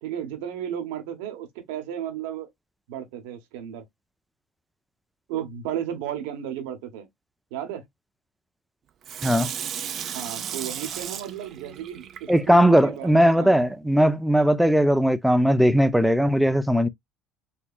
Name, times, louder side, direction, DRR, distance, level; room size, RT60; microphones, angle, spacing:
voice 1, 0.0-2.5 2.9-3.8 5.3-7.1 7.5-7.9 10.1-13.6, right 10 dB, 80° right, 1.1 m, -34 dB
Water tap faucet / Sink (filling or washing), 9.0-12.8 13.3-13.4, right 9 dB, 50° right, 0.7 m, -34 dB
voice 2, 12.3-16.9, equal, 5° right, 0.6 m, -19 dB
4.2 x 2.8 x 2.4 m
hypercardioid pair, 75°, 0 cm